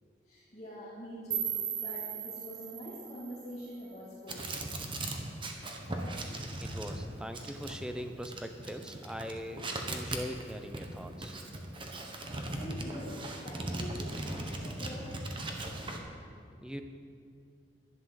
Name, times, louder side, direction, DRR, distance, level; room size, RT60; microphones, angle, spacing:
voice 1, 0.3-1.5 1.7-4.6 12.5-13.1 13.4-15.1, equal, 35° left, -9 dB, 2.5 m, -45 dB
sound 1, 1.3-4.3, right 8 dB, 75° right, 1.6 m, -38 dB
sound 2, 4.3-16.0, right 1 dB, 25° right, 1.2 m, -39 dB
voice 2, 6.6-11.4 16.6-16.9, equal, 5° right, 6 dB, 0.7 m, -41 dB
11.5 x 11.0 x 6.4 m, 2.4 s
head